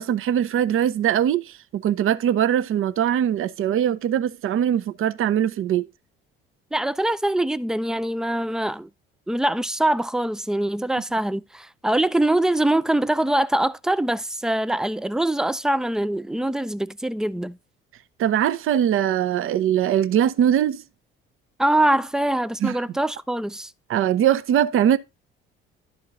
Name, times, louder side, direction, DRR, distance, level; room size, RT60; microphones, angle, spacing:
voice 1, 0.0-5.8 18.2-20.8 22.6-22.8 23.9-25.0, right 10 dB, 45° right, 0.7 m, -21 dB
voice 2, 6.7-8.9 9.3-17.6 21.6-23.7, right 1 dB, ahead, 0.4 m, -23 dB
12.0 x 4.4 x 3.7 m
figure-of-eight pair, 50°, 31 cm